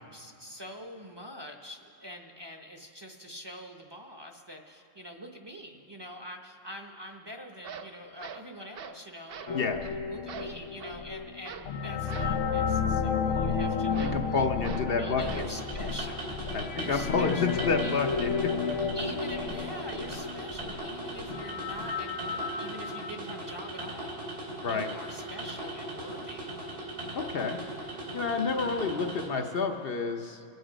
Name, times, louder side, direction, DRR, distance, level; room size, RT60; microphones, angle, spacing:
voice 1, 0.0-9.7 10.1-16.3 16.8-18.1 18.9-24.2 24.6-26.5, equal, 25° right, 2 dB, 0.9 m, -44 dB
sound 1, 7.1-7.2 7.5-9.0 9.3-9.6 9.8-10.0 10.3-11.0 11.4-11.7 12.1-12.4 13.9-14.2 14.6-14.9 15.3-15.6, right 6 dB, 60° right, 0.8 m, -42 dB
sound 2, 9.5-23.1, left 5 dB, 90° left, 1.1 m, -32 dB
voice 2, 14.1-15.4 16.5-18.5 24.6-24.9 27.1-27.6 28.1-30.4, left 4 dB, 60° left, 4 dB, 0.8 m, -29 dB
sound 3, 15.2-29.3, right 1 dB, 75° right, 3.1 m, -39 dB
23.0 x 8.1 x 5.0 m, 2.7 s
omnidirectional pair, 1.2 m